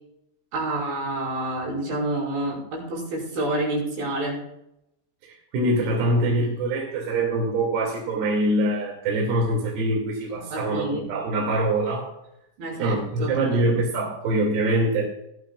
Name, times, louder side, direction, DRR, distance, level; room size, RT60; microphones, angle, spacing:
voice 1, 0.5-4.4 10.3-11.1 12.6-13.4, right 1 dB, 80° right, -3 dB, 7.9 m, -28 dB
voice 2, 5.5-12.1 12.8-15.0, right 1 dB, 65° right, -3 dB, 4.5 m, -24 dB
18.0 x 14.5 x 2.5 m, 0.82 s
omnidirectional pair, 5.3 m